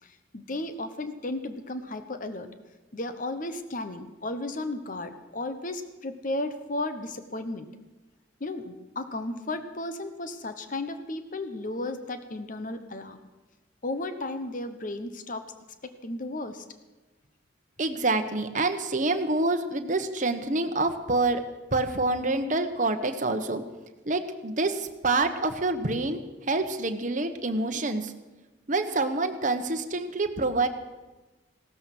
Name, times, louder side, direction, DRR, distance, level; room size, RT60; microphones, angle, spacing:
voice 1, 0.0-2.5 2.9-7.7 8.4-13.2 13.8-15.4 15.8-16.6, left 2 dB, 45° left, 9 dB, 1.1 m, -34 dB
voice 2, 17.8-21.4 21.7-23.6 24.1-26.2 26.5-28.1 28.7-30.7, right 2 dB, 40° right, 7 dB, 1.1 m, -27 dB
16.5 x 13.0 x 6.1 m, 1.2 s
head